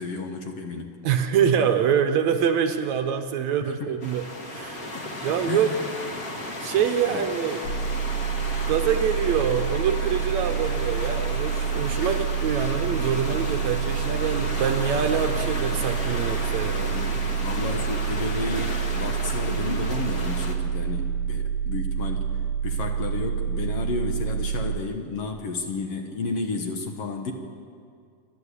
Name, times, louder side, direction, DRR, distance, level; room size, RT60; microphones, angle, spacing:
voice 1, 0.0-0.9 3.6-4.0 5.5-5.8 7.1-7.3 16.9-22.4 22.6-27.3, left 3 dB, 60° left, 4 dB, 2.0 m, -32 dB
voice 2, 1.0-4.2 4.5-4.9 5.2-5.7 6.3-7.6 8.7-17.0, right 8 dB, 70° right, 7 dB, 2.1 m, -25 dB
sound 1, 4.0-20.6, left 1 dB, 35° left, 1.6 m, -34 dB
sound 2, 7.6-24.8, right 7 dB, 80° left, 3.2 m, -28 dB
27.5 x 12.0 x 8.3 m, 2.2 s
omnidirectional pair, 3.7 m